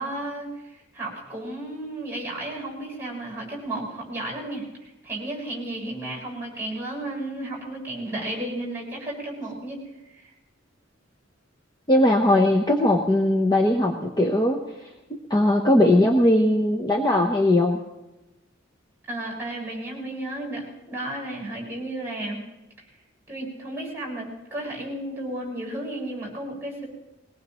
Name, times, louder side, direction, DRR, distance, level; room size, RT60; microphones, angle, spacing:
voice 1, 0.0-9.8 10.0-10.3 19.1-22.4 23.3-26.9, right 1 dB, 10° right, -4 dB, 6.9 m, -33 dB
voice 2, 11.9-14.6 15.3-17.8, left 1 dB, 20° left, 1 dB, 1.0 m, -19 dB
22.0 x 19.0 x 3.1 m, 1.0 s
head